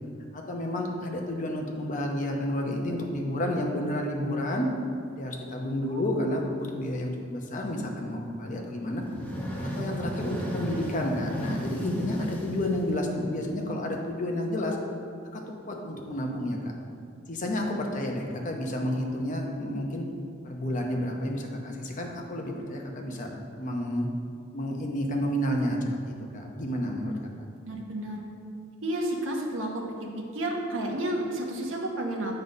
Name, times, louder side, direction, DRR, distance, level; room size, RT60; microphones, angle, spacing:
voice 1, 0.3-4.7 5.1-9.0 9.8-14.8 15.3-16.6 17.3-20.0 20.4-23.3 23.6-24.1 24.5-25.8 26.1-27.1, left 1 dB, 40° left, 1 dB, 0.8 m, -30 dB
sound 1, 8.9-13.5, equal, 10° left, 1.0 m, -34 dB
voice 2, 27.6-28.2 28.8-29.8 30.2-32.3, right 1 dB, 75° right, 0 dB, 1.0 m, -31 dB
7.6 x 3.9 x 5.2 m, 2.3 s
head